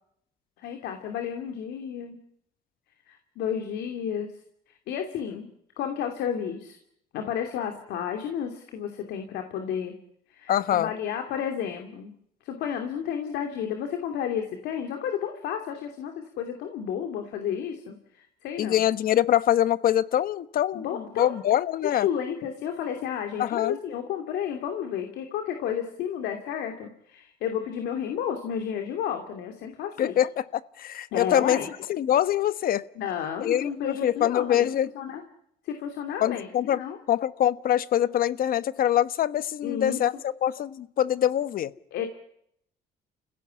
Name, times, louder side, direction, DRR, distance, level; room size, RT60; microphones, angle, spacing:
voice 1, 0.6-2.2 3.1-4.3 4.9-5.5 5.8-6.8 7.1-9.9 10.3-12.1 12.4-18.9 20.7-21.3 21.8-30.2 31.1-31.7 33.0-34.7 34.9-35.2 35.6-37.0 39.6-40.0 41.9-42.0, left 8 dB, 80° left, 5 dB, 2.8 m, -32 dB
voice 2, 10.5-10.9 18.6-22.1 23.4-23.8 30.0-31.6 31.9-32.8 33.4-34.9 36.2-36.8 37.1-41.7, left 11 dB, 60° left, 15 dB, 1.2 m, -24 dB
30.0 x 16.5 x 9.8 m, 0.73 s
cardioid pair, 110°, 17 cm